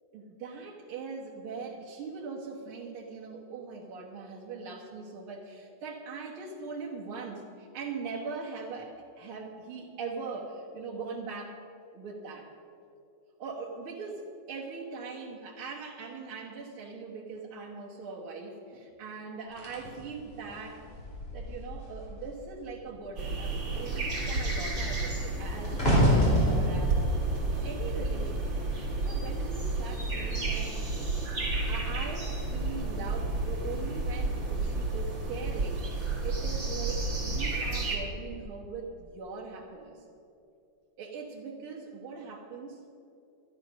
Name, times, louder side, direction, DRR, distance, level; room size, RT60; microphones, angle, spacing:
voice 1, 0.1-11.6 11.9-12.5 13.4-20.9 21.3-27.2 27.5-28.6 29.0-30.7 31.7-40.0 41.0-42.8, right 4 dB, 80° right, -4 dB, 2.3 m, -41 dB
sound 1, 19.6-22.3 22.6-23.0 23.3-28.6 29.3-29.6, equal, 25° left, 3.4 m, -29 dB
sound 2, 23.2-38.0, right 3 dB, 60° right, 3.4 m, -31 dB
11.5 x 11.5 x 6.2 m, 2.6 s
omnidirectional pair, 2.3 m